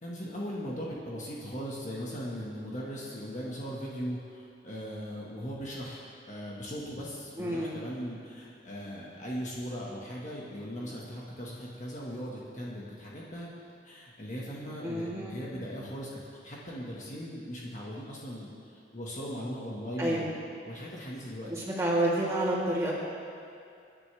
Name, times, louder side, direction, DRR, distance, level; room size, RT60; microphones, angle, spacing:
voice 1, 0.0-13.5 13.8-20.3 20.6-21.5, equal, 40° left, -5 dB, 1.8 m, -39 dB
voice 2, 7.4-7.7 14.8-15.3 20.0-20.3 21.5-22.9, right 1 dB, 15° right, -7 dB, 3.1 m, -29 dB
26.5 x 10.0 x 3.5 m, 2.4 s
head